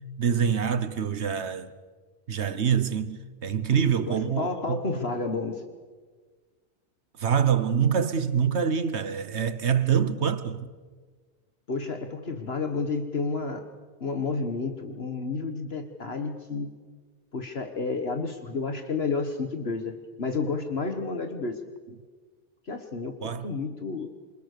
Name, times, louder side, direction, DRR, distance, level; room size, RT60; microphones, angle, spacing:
voice 1, 0.2-1.7 2.3-4.8 7.2-10.7 23.2-23.5, right 7 dB, 70° right, 1.3 m, -25 dB
voice 2, 4.1-5.6 11.7-13.7 14.0-16.7 17.3-21.6 22.7-24.1, left 4 dB, 60° left, 1.8 m, -31 dB
27.5 x 27.0 x 6.8 m
omnidirectional pair, 1.2 m